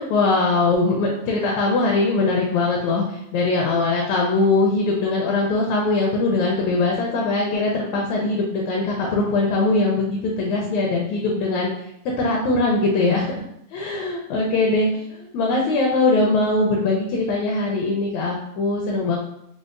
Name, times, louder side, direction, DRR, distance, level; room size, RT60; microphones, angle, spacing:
voice 1, 0.0-11.7 12.2-13.4 13.7-14.9 15.3-19.2, left 3 dB, 80° left, -1 dB, 1.7 m, -21 dB
5.1 x 2.0 x 2.4 m, 0.77 s
omnidirectional pair, 3.4 m